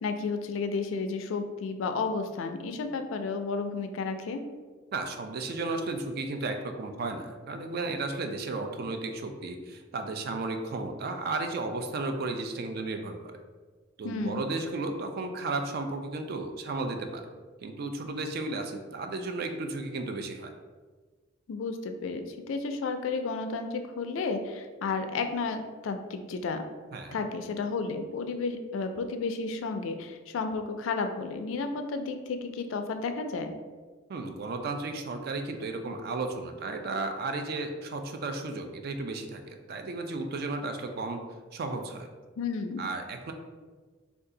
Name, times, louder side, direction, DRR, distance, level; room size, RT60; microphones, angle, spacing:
voice 1, 0.0-4.4 14.0-14.4 21.5-26.6 27.1-33.5 42.4-42.8, left 4 dB, 75° left, 6 dB, 0.3 m, -32 dB
voice 2, 4.9-13.4 14.0-17.3 17.6-20.5 26.9-27.2 34.1-41.2 41.5-42.1 42.8-43.3, right 3 dB, 50° right, 6 dB, 0.3 m, -34 dB
2.6 x 2.3 x 3.7 m, 1.4 s
head